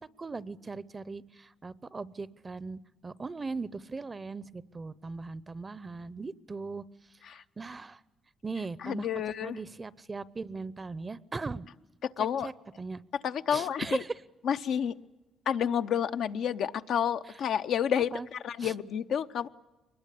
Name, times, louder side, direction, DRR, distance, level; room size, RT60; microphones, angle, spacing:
voice 1, 0.2-6.8 7.3-8.0 8.4-9.1 9.4-11.7 12.4-13.0 13.5-14.1 18.1-18.3 18.6-18.7, right 3 dB, 30° right, 19 dB, 0.7 m, -39 dB
voice 2, 8.8-9.6 12.2-12.5 13.2-14.0 14.4-14.9 15.5-19.5, left 8 dB, 70° left, 8 dB, 0.8 m, -30 dB
23.5 x 21.0 x 8.4 m, 1.1 s
cardioid pair, 90°, 0 cm